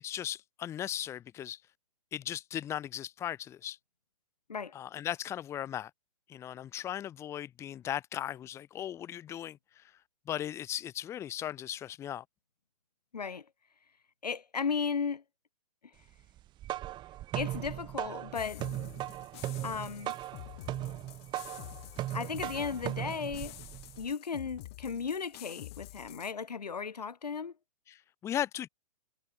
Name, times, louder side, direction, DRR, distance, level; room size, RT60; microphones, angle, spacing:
voice 1, 0.0-1.6 2.1-3.8 4.7-5.9 6.3-9.8 10.3-12.2 27.9-28.7, left 11 dB, 15° left, 0.6 m, -37 dB
voice 2, 13.1-13.4 14.2-15.2 17.3-18.6 19.6-20.1 22.1-23.5 24.0-27.5, left 5 dB, 80° left, 0.8 m, -35 dB
sound 1, 16.4-24.1, right 14 dB, 20° right, 1.5 m, -38 dB
sound 2, 18.3-26.3, left 19 dB, 40° left, 2.3 m, -48 dB
figure-of-eight pair, 120°, 20 cm